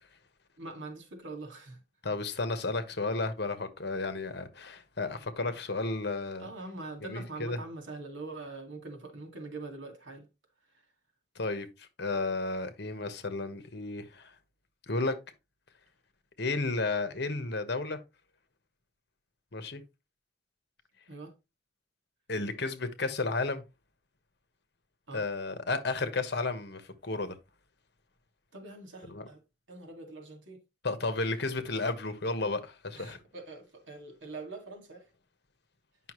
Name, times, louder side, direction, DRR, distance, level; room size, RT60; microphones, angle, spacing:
voice 1, 0.6-1.8 6.4-10.3 21.1-21.3 25.1-25.2 28.5-29.4 29.7-30.6 31.5-31.9 32.9-35.1, right 3 dB, 85° right, 2.2 m, -43 dB
voice 2, 2.0-6.5 7.0-7.6 11.4-14.3 14.9-15.2 16.4-18.0 19.5-19.8 22.3-23.6 25.1-27.3 29.1-29.2 30.8-33.2, left 3 dB, 60° left, 1.2 m, -33 dB
9.2 x 5.7 x 3.1 m
head